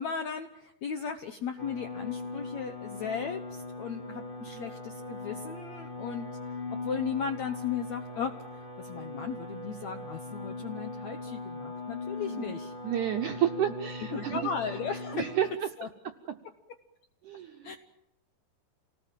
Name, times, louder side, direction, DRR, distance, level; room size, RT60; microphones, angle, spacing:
voice 1, 0.0-6.3 6.8-12.7 14.1-15.3 15.8-15.9 17.6-17.8, left 6 dB, 70° left, 7 dB, 1.7 m, -36 dB
sound 1, 1.6-15.5, left 2 dB, 15° left, 1.8 m, -40 dB
voice 2, 12.2-12.6 12.8-14.4 15.1-15.5 17.2-17.8, right 10 dB, 75° right, 7 dB, 1.8 m, -31 dB
28.5 x 19.0 x 7.5 m, 0.85 s
omnidirectional pair, 4.8 m